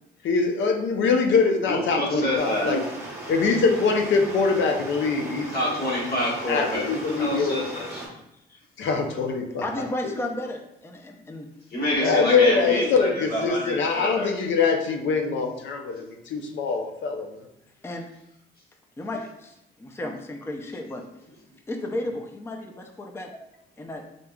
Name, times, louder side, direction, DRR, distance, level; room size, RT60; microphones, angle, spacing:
voice 1, 0.2-2.8 3.3-5.8 6.1-6.2 6.5-7.6 8.8-9.6 12.0-17.4, left 4 dB, 70° left, 4 dB, 0.6 m, -23 dB
voice 2, 1.6-2.8 5.5-8.1 11.7-14.3 20.0-20.1, left 1 dB, 50° left, -4 dB, 1.5 m, -28 dB
Stream, 2.4-8.1, right 1 dB, 15° right, 1.0 m, -38 dB
voice 3, 9.6-11.5 12.0-12.2 17.8-18.1 19.0-21.0 21.7-23.3 23.8-24.0, left 1 dB, 10° left, 3 dB, 0.4 m, -33 dB
3.8 x 3.5 x 2.2 m, 0.80 s
cardioid pair, 90°, 20 cm